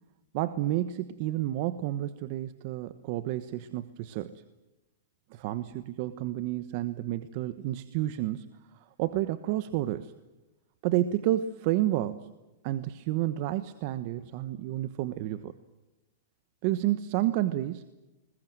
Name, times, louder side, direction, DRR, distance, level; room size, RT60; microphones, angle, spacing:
voice 1, 0.3-4.4 5.3-8.5 9.0-10.1 10.8-12.3 12.6-15.5 16.6-17.8, right 14 dB, 50° right, 13 dB, 1.1 m, -30 dB
21.5 x 21.0 x 9.4 m, 1.0 s
supercardioid pair, 145°, 0 cm